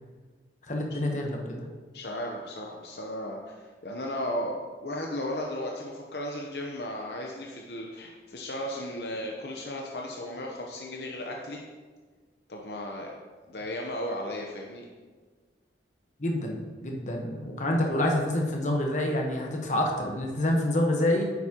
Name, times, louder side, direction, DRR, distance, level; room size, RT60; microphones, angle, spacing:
voice 1, 0.7-1.6 16.2-21.3, left 1 dB, 40° left, 1 dB, 1.1 m, -27 dB
voice 2, 1.9-3.6 3.8-4.6 4.8-11.6 12.5-13.1 13.5-14.8, left 1 dB, 60° left, -1 dB, 0.8 m, -35 dB
9.3 x 8.0 x 2.9 m, 1.4 s
head